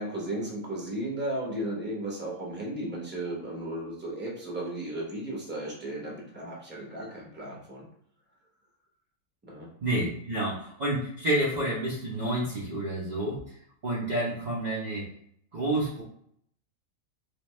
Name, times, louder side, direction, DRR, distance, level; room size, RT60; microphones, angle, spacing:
voice 1, 0.0-7.9 9.4-9.7, right 1 dB, 10° right, -3 dB, 0.9 m, -35 dB
voice 2, 9.8-13.4 13.8-15.1 15.5-16.0, right 1 dB, 40° right, -6 dB, 0.7 m, -29 dB
3.3 x 3.0 x 3.2 m, 0.68 s
omnidirectional pair, 1.4 m